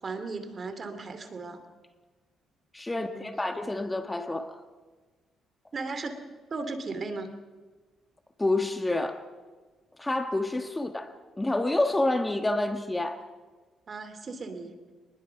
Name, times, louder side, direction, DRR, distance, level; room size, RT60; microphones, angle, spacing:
voice 1, 0.0-1.6 2.9-3.4 5.7-6.2 6.5-7.3 13.9-14.7, right 3 dB, 40° right, 9 dB, 2.8 m, -36 dB
voice 2, 2.7-4.6 8.4-9.3 10.0-13.2, left 2 dB, 15° left, 7 dB, 1.4 m, -28 dB
24.0 x 20.5 x 5.8 m, 1.4 s
cardioid pair, 90°, 0 cm